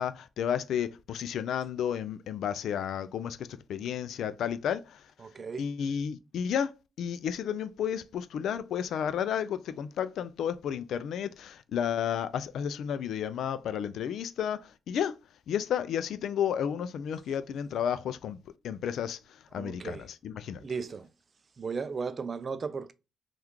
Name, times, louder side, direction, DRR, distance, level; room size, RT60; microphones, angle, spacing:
voice 1, 0.0-5.0 5.6-15.2 15.5-18.4 18.6-20.6, left 8 dB, 70° left, 0.3 m, -32 dB
voice 2, 5.2-5.7 19.5-20.1 20.6-21.1 21.6-22.9, right 5 dB, 40° right, 0.3 m, -35 dB
3.5 x 2.3 x 3.0 m
cardioid pair, 90°, 0 cm